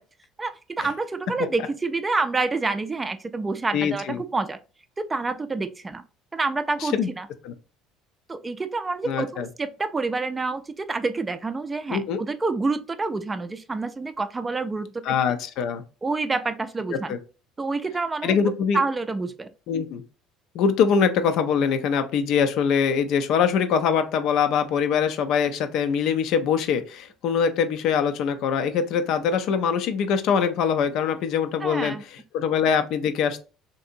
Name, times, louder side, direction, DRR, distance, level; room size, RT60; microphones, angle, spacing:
voice 1, 0.4-4.6 5.1-6.0 6.3-7.3 8.3-15.2 16.0-17.1 17.6-18.4 18.7-19.5 31.6-32.0, right 3 dB, 25° right, 0.4 m, -28 dB
voice 2, 3.7-4.2 6.8-7.1 7.4-7.5 9.1-9.5 11.9-12.2 15.0-15.8 16.9-17.2 18.2-18.8 19.7-20.0 20.5-33.4, left 7 dB, 65° left, 0.4 m, -23 dB
2.7 x 2.6 x 2.5 m
hypercardioid pair, 75°, 0 cm